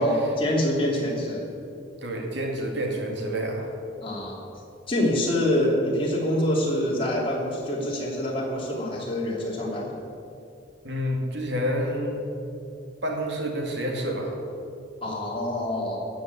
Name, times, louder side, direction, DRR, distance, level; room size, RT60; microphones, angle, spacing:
voice 1, 0.0-1.4 4.0-4.4 4.9-9.9 15.0-16.1, left 1 dB, 25° left, -3 dB, 2.8 m, -25 dB
voice 2, 2.0-3.7 10.8-12.2 13.0-14.4, equal, 65° right, 0 dB, 2.4 m, -28 dB
14.0 x 7.2 x 8.2 m, 2.6 s
head